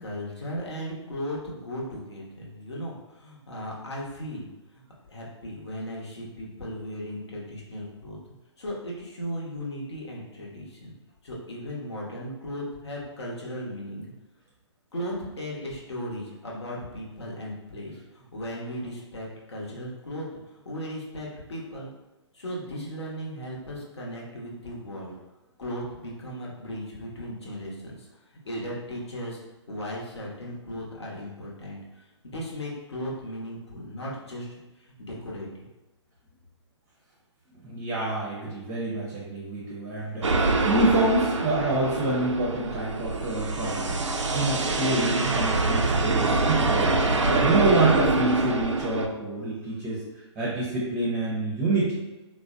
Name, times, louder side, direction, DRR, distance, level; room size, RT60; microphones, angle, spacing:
voice 1, 0.0-4.8 5.1-8.2 8.6-10.9 11.2-14.1 14.9-20.3 20.6-21.9 22.3-25.1 25.6-28.1 28.4-29.4 29.7-31.8 32.2-35.5, equal, 65° left, -4 dB, 0.9 m, -36 dB
voice 2, 37.6-43.9 44.3-50.0 50.4-52.0, right 2 dB, 15° right, -5 dB, 0.6 m, -27 dB
sound 1, 40.2-49.1, right 3 dB, 80° right, 0.4 m, -25 dB
4.0 x 2.1 x 2.4 m, 1.1 s
figure-of-eight pair, 130°, 15 cm